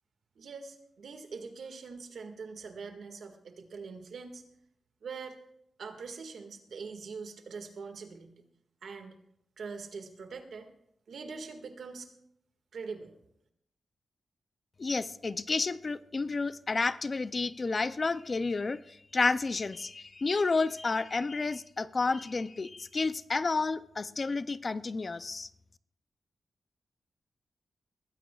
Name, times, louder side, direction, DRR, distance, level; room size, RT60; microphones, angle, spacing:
voice 1, 0.4-4.4 5.0-5.4 5.8-8.4 8.8-9.1 9.6-10.7 11.1-12.1 12.7-13.1, right 5 dB, 70° right, 1.8 m, -43 dB
voice 2, 14.8-25.5, left 3 dB, 30° left, 0.4 m, -31 dB
21.5 x 15.5 x 2.4 m
wide cardioid pair, 155°, 0 cm